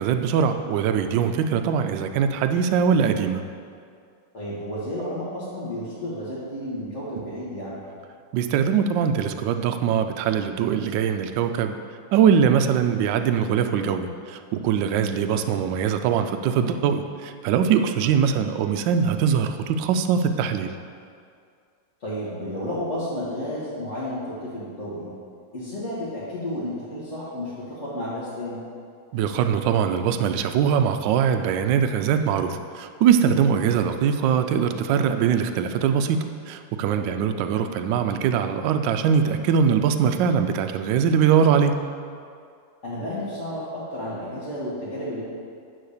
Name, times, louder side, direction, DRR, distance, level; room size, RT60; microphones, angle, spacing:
voice 1, 0.0-3.4 8.3-11.7 12.1-20.7 29.1-41.8, right 7 dB, 75° right, 7 dB, 1.1 m, -22 dB
voice 2, 4.3-7.8 22.0-25.1 25.5-28.6 36.9-37.1 42.8-45.2, left 1 dB, 40° left, -12 dB, 1.9 m, -32 dB
9.2 x 4.2 x 6.6 m, 2.3 s
omnidirectional pair, 2.2 m